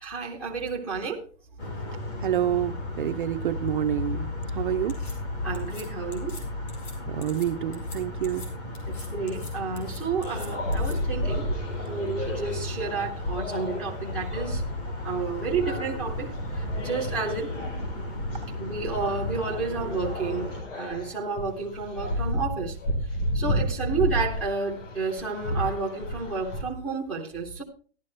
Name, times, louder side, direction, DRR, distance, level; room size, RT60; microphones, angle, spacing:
voice 1, 0.0-1.2 5.4-6.3 8.2-8.3 8.9-11.4 11.9-14.6 15.0-17.5 18.6-22.8 23.3-27.6, right 4 dB, 5° left, -3 dB, 0.6 m, -31 dB
sound 1, 1.6-20.6, left 2 dB, 20° left, 1.1 m, -35 dB
voice 2, 2.2-5.0 7.1-8.5, right 11 dB, 45° right, 8 dB, 0.5 m, -28 dB
sound 2, 4.9-5.1 5.5-5.8 6.1-6.4 6.7-6.9 7.2-7.5 7.7-8.0 8.2-8.5 8.7-9.5 9.8-10.9, left 3 dB, 60° left, 4.3 m, -45 dB
sound 3, 10.2-26.6, left 1 dB, 85° left, 3.9 m, -32 dB
13.5 x 11.5 x 3.2 m, 0.40 s
hypercardioid pair, 180°, 37 cm